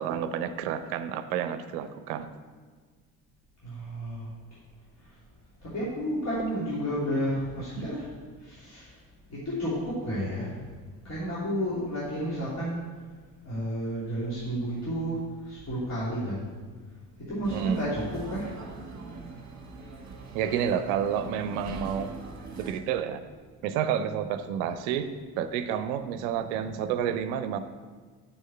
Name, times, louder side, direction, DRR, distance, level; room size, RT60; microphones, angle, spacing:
voice 1, 0.0-2.3 7.8-7.9 17.5-17.8 20.3-22.2 22.5-23.2 23.6-27.6, right 8 dB, 65° right, 11 dB, 0.7 m, -30 dB
voice 2, 3.6-4.3 5.6-8.1 8.4-8.9 9.3-10.6 11.0-12.8 13.4-16.5 17.3-18.5, equal, 35° left, -9 dB, 3.0 m, -31 dB
sound 1, 17.4-22.8, right 3 dB, 35° right, 1.4 m, -42 dB
6.4 x 6.3 x 7.4 m, 1.5 s
figure-of-eight pair, 50°, 46 cm